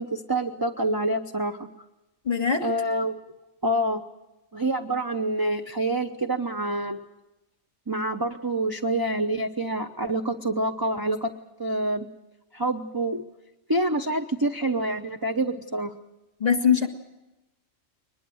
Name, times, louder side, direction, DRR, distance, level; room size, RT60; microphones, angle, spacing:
voice 1, 0.0-1.6 2.6-3.2 3.6-4.0 4.5-7.0 7.9-11.3 11.6-12.1 12.5-13.2 13.7-15.9, right 1 dB, 20° right, 6 dB, 0.7 m, -27 dB
voice 2, 2.2-2.7 16.4-16.9, left 7 dB, 30° left, 5 dB, 2.2 m, -21 dB
22.5 x 21.0 x 7.8 m, 0.99 s
omnidirectional pair, 1.4 m